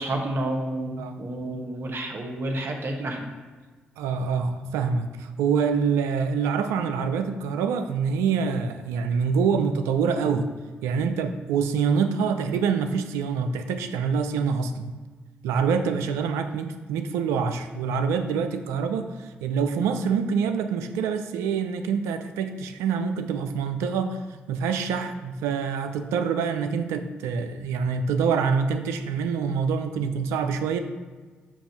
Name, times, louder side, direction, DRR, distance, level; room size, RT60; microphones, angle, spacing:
voice 1, 0.0-3.3, right 1 dB, 55° right, 2 dB, 1.1 m, -30 dB
voice 2, 4.0-10.5 10.8-15.0 15.4-24.2 24.5-30.8, right 6 dB, 85° right, 8 dB, 0.4 m, -26 dB
7.2 x 2.5 x 5.7 m, 1.4 s
supercardioid pair, 50°, 5 cm